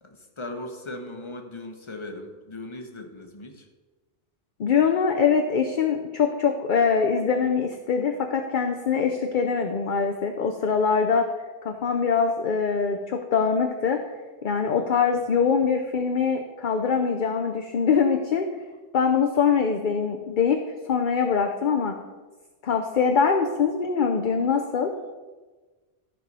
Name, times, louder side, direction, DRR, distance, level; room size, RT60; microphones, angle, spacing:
voice 1, 0.0-3.7 15.3-15.4, left 2 dB, 25° left, 3 dB, 1.2 m, -38 dB
voice 2, 4.6-11.3 11.6-14.0 14.4-18.5 18.9-20.6 20.9-22.0 22.6-24.9, left 6 dB, 50° left, 5 dB, 0.7 m, -23 dB
13.5 x 4.7 x 5.4 m, 1.3 s
omnidirectional pair, 1.1 m